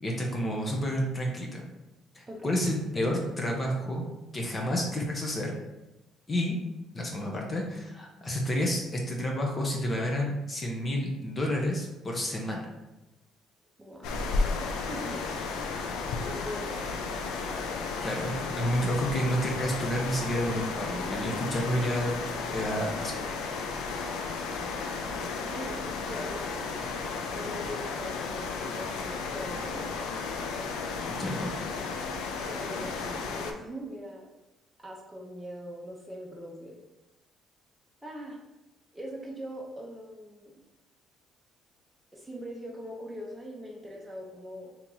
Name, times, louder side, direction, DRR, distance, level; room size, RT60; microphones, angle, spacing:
voice 1, 0.0-1.6 2.1-4.1 4.3-5.5 6.3-6.5 6.9-12.7 18.0-22.2 22.5-23.1 31.1-31.5, equal, 30° left, 0 dB, 0.7 m, -30 dB
voice 2, 2.3-2.6 13.8-14.2 14.8-15.7 16.2-17.2 25.4-26.7 27.3-29.8 32.4-34.3 34.8-36.8 38.0-38.4 38.9-40.5 42.1-44.7, equal, 10° right, -3 dB, 0.7 m, -41 dB
sound 1, 14.0-33.5, left 4 dB, 85° left, 0.4 m, -33 dB
2.9 x 2.8 x 3.7 m, 0.99 s
cardioid pair, 95°, 0 cm